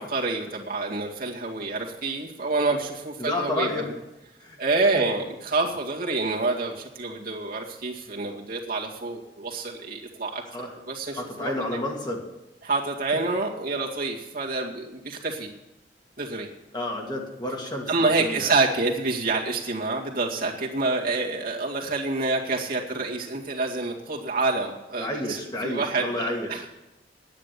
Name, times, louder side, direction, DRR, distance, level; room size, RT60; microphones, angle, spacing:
voice 1, 0.0-3.7 4.6-11.8 12.6-15.5 16.2-16.5 17.9-26.6, right 3 dB, 55° right, -2 dB, 2.2 m, -27 dB
voice 2, 3.2-3.9 4.4-4.6 10.5-10.7 11.1-12.2 16.7-18.5 25.0-26.6, left 1 dB, 25° left, 1 dB, 2.1 m, -30 dB
10.0 x 9.8 x 8.4 m, 0.96 s
head